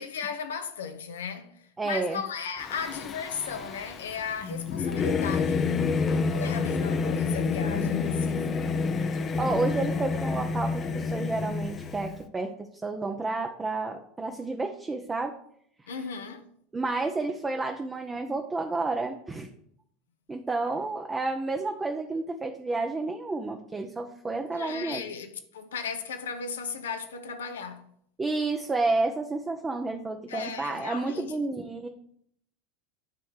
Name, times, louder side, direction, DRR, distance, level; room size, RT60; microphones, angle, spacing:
voice 1, 0.0-5.7 6.3-8.7 15.9-16.5 24.5-27.9 30.3-31.4, left 6 dB, 75° left, 0.8 m, -36 dB
voice 2, 1.8-2.2 7.6-8.5 9.4-15.4 16.7-19.5 20.3-25.0 28.2-31.9, right 3 dB, 20° right, 0.7 m, -30 dB
Singing / Musical instrument, 2.6-12.2, left 5 dB, 35° left, 0.6 m, -29 dB
9.3 x 3.3 x 6.4 m
figure-of-eight pair, 75°, 0 cm